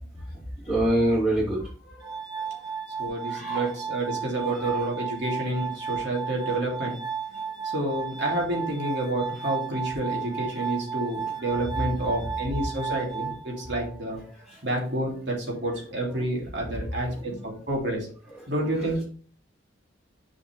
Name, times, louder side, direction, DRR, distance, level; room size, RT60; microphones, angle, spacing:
voice 1, 0.1-2.6 3.2-3.7 4.4-4.8 11.0-11.1 11.4-11.7 14.3-14.7 16.1-16.2 17.1-17.4 18.3-19.0, right 1 dB, 5° right, -11 dB, 3.0 m, -29 dB
Glass, 2.0-14.0, right 7 dB, 20° right, 0.7 m, -34 dB
voice 2, 3.0-7.0 7.6-14.2 14.6-18.1 18.5-19.0, right 1 dB, 60° right, -2 dB, 2.9 m, -29 dB
7.0 x 6.4 x 3.4 m, 0.43 s
head